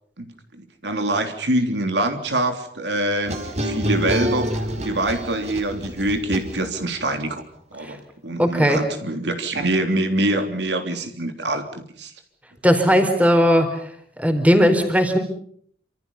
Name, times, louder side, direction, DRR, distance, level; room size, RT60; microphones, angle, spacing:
voice 1, 0.2-7.4 7.7-12.1, right 1 dB, 70° right, 6 dB, 3.3 m, -25 dB
sound 1, 3.2-7.0, equal, 40° right, 4.5 m, -27 dB
voice 2, 8.4-8.8 12.6-13.8 14.2-15.2, equal, 10° right, 7 dB, 4.3 m, -17 dB
28.5 x 27.0 x 5.6 m, 0.62 s
head